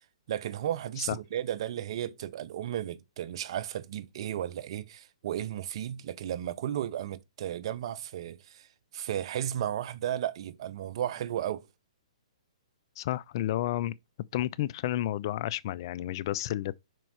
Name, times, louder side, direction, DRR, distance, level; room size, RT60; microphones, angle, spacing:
voice 1, 0.3-8.7 8.9-11.6, right 11 dB, 50° right, 0.7 m, -34 dB
voice 2, 13.0-13.9 14.3-16.8, left 13 dB, 40° left, 0.3 m, -31 dB
5.3 x 4.5 x 6.2 m
hypercardioid pair, 145°, 4 cm